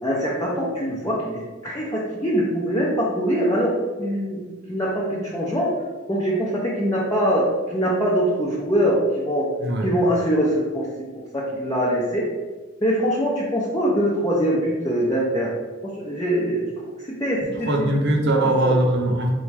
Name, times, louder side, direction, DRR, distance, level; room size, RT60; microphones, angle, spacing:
voice 1, 0.0-3.7 4.0-4.4 4.7-5.7 6.1-9.5 9.8-10.9 11.3-12.3 12.8-15.5 15.8-16.7 17.1-17.9 18.2-18.7, equal, 15° left, -5 dB, 0.6 m, -23 dB
voice 2, 17.7-19.3, right 1 dB, 60° right, 2 dB, 0.7 m, -20 dB
4.1 x 2.3 x 4.6 m, 1.3 s
head